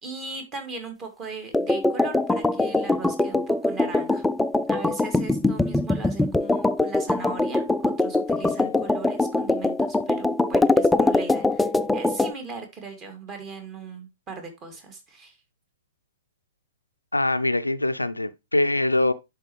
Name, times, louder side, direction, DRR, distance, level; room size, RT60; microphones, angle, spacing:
voice 1, 0.0-4.2 4.7-15.4, right 4 dB, 25° right, 2.2 m, -39 dB
sound 1, 1.5-12.3, left 2 dB, 5° left, 0.3 m, -23 dB
voice 2, 17.1-19.1, left 1 dB, 90° left, 0.5 m, -23 dB
10.5 x 4.3 x 3.2 m
figure-of-eight pair, 110°, 0 cm